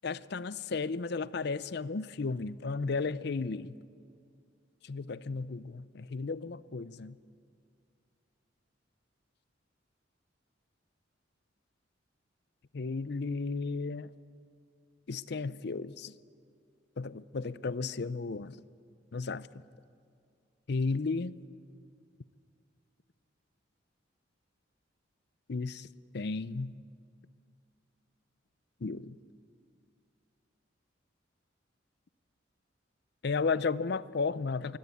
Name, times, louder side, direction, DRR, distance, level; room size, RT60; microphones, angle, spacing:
voice 1, 0.0-3.8 4.8-7.2 12.7-14.1 15.1-16.1 17.0-18.6 19.1-19.6 20.7-21.4 25.5-25.9 26.1-26.7 28.8-29.2 33.2-34.8, left 4 dB, 60° left, 0.6 m, -34 dB
23.0 x 17.5 x 8.5 m
head